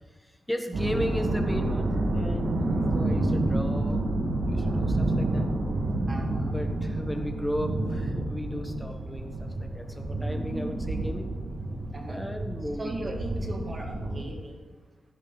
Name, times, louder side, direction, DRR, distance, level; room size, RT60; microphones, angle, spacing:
voice 1, 0.1-4.1 4.4-5.5 6.5-11.3 12.1-13.1, equal, 5° left, 4 dB, 1.5 m, -35 dB
sound 1, 0.7-14.2, right 2 dB, 55° right, 2.2 m, -29 dB
voice 2, 6.1-6.6 11.9-12.3 12.8-14.6, right 1 dB, 25° right, 1 dB, 2.3 m, -38 dB
16.5 x 16.0 x 4.2 m, 1.3 s
wide cardioid pair, 175°, 0 cm